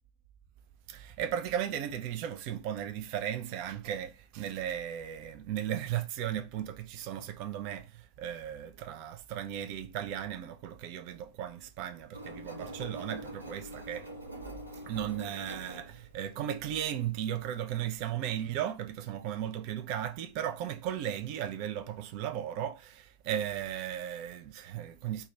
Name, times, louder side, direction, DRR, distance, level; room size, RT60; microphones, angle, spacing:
voice 1, 0.9-14.1 14.9-25.3, right 10 dB, 45° right, 0.4 m, -36 dB
Engine, 12.1-17.6, right 1 dB, 85° right, 0.8 m, -45 dB
2.3 x 2.2 x 3.8 m
figure-of-eight pair, 90°, 0 cm